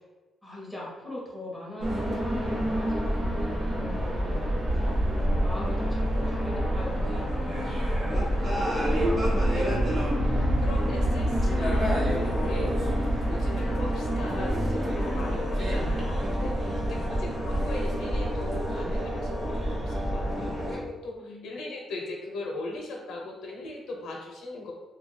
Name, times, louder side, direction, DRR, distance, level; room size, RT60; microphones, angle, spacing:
voice 1, 0.4-4.8 5.1-8.4 16.6-17.2 21.2-21.5, left 1 dB, ahead, -6 dB, 0.9 m, -41 dB
sound 1, 1.8-20.8, equal, 35° right, 0.8 m, -27 dB
voice 2, 8.8-24.7, left 2 dB, 85° left, 0 dB, 0.7 m, -39 dB
2.7 x 2.3 x 3.2 m, 1.2 s
cardioid pair, 155°, 0 cm